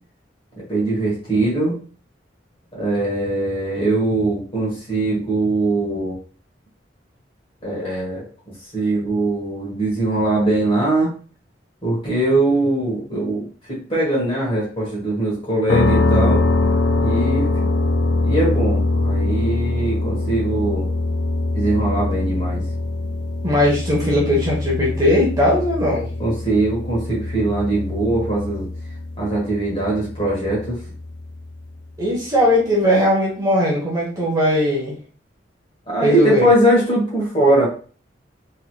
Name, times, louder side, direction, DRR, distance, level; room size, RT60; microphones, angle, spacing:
voice 1, 0.6-1.7 2.7-6.2 7.6-8.3 8.7-11.1 11.8-16.4 17.0-17.5 18.2-20.8 21.5-22.6 26.2-28.7 29.2-30.8 35.9-37.7, right 1 dB, 30° left, -5 dB, 1.7 m, -21 dB
sound 1, 15.7-31.5, left 2 dB, 75° left, 0.4 m, -23 dB
voice 2, 23.4-26.0 32.0-34.9 36.0-36.5, left 1 dB, 20° right, -4 dB, 0.9 m, -18 dB
3.7 x 3.0 x 2.2 m, 0.40 s
head